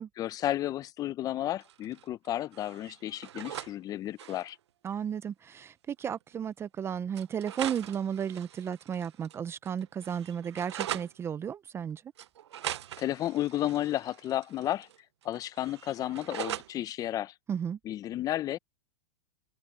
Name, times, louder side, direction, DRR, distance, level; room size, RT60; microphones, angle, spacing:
voice 1, 0.2-4.6 12.6-14.9 15.2-17.3 17.8-18.6, left 13 dB, 25° left, 0.7 m, -32 dB
sound 1, 1.6-2.3 2.5-3.7 4.0-4.5 5.6-5.7 6.0-6.1 7.1-9.4 9.7-11.1 12.2-15.0 15.2-16.7, right 11 dB, 85° right, 0.7 m, -41 dB
voice 2, 4.8-12.0 17.5-17.8, right 8 dB, 20° right, 0.6 m, -34 dB
hypercardioid pair, 135°, 14 cm